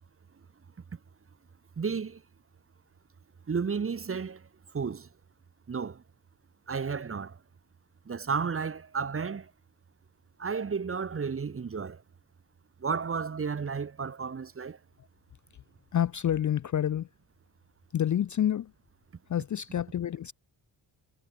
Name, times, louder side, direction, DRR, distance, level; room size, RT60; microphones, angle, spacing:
voice 1, 1.8-2.2 3.5-4.5 4.7-5.1 5.7-6.0 6.7-7.4 8.1-9.5 10.4-12.0 12.8-14.8, right 5 dB, 30° right, 0.8 m, -32 dB
voice 2, 15.9-17.1 17.9-18.7 19.3-20.3, left 10 dB, 40° left, 0.4 m, -28 dB
wide cardioid pair, 120°, 47 cm